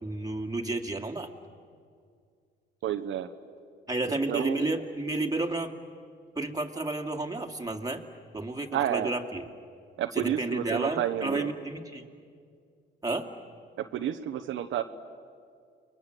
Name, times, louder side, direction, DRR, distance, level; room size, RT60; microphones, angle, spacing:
voice 1, 0.0-1.3 3.9-5.7 6.3-8.0 8.3-9.4 10.2-12.1 13.0-13.3, right 2 dB, 20° right, 3 dB, 2.5 m, -31 dB
voice 2, 2.8-3.3 4.1-4.7 8.7-9.1 10.0-11.5 13.8-14.8, right 10 dB, 80° right, 6 dB, 1.1 m, -30 dB
30.0 x 22.5 x 7.9 m, 2.2 s
cardioid pair, 90°, 20 cm